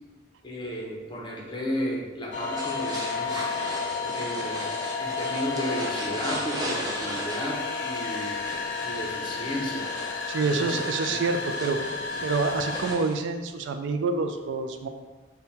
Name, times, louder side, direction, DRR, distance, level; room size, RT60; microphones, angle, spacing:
voice 1, 0.4-3.5 4.1-8.4 8.8-9.9 10.4-10.7 11.1-11.3, equal, 25° left, -2 dB, 0.6 m, -33 dB
sound 1, 2.3-12.9, left 4 dB, 70° left, 0.5 m, -32 dB
sound 2, 2.6-13.1, right 1 dB, 20° right, 0.5 m, -38 dB
voice 2, 10.3-11.8 12.2-14.9, right 4 dB, 80° right, 7 dB, 0.3 m, -27 dB
3.6 x 2.2 x 4.1 m, 1.3 s
head